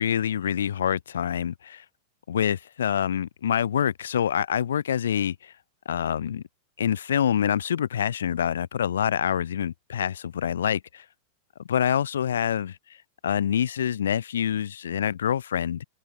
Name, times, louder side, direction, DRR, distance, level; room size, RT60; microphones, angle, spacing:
voice 1, 0.0-1.8 2.3-5.5 5.9-6.4 6.8-11.0 11.7-12.8 13.2-15.8, left 9 dB, 65° left, 4.3 m, -26 dB
figure-of-eight pair, 90°, 0 cm